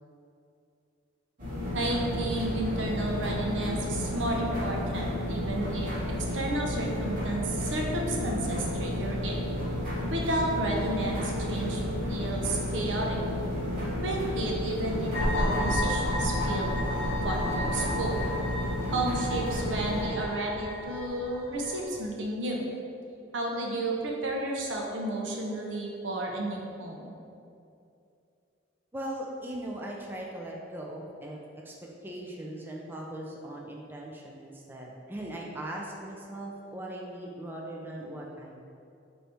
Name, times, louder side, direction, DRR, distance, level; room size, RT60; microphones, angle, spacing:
sound 1, 1.4-20.0, left 1 dB, 45° right, 1.2 m, -32 dB
voice 1, 1.7-9.3 10.1-11.8 12.1-13.2 14.0-16.7 17.2-18.2 18.9-22.7 23.3-27.1, right 2 dB, 75° right, 0 dB, 0.6 m, -32 dB
sound 2, 15.1-21.9, left 1 dB, 80° left, 0.5 m, -32 dB
voice 2, 28.9-31.4 31.6-31.7 32.0-38.6, right 1 dB, 10° right, -2 dB, 0.3 m, -39 dB
4.2 x 2.7 x 3.4 m, 2.6 s
head